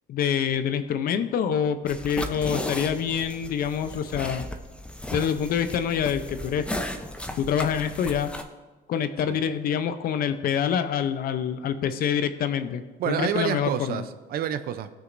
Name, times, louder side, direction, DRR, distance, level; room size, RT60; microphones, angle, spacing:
voice 1, 0.1-4.5 5.1-6.7 7.3-8.3 8.9-14.0, left 8 dB, 60° left, 10 dB, 0.7 m, -26 dB
sound 1, 1.9-8.4, left 1 dB, 5° left, 0.7 m, -35 dB
voice 2, 13.0-14.9, right 9 dB, 65° right, 11 dB, 0.6 m, -28 dB
16.0 x 6.3 x 2.6 m, 1.3 s
cardioid pair, 110°, 17 cm